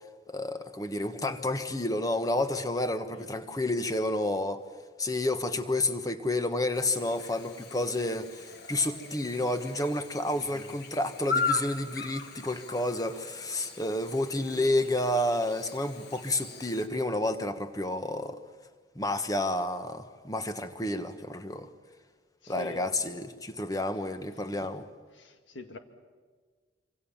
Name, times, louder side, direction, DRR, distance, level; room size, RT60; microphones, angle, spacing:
voice 1, 0.3-4.6 5.0-18.4 18.9-21.7 22.5-24.8, left 1 dB, 20° left, 9 dB, 1.3 m, -30 dB
Chirp tweet / Buzz, 6.7-16.9, left 4 dB, 60° left, 2.0 m, -38 dB
voice 2, 10.3-10.7 22.4-22.9 24.5-24.7 25.1-25.8, left 3 dB, 85° left, 7 dB, 2.0 m, -45 dB
26.0 x 26.0 x 7.3 m, 1.5 s
head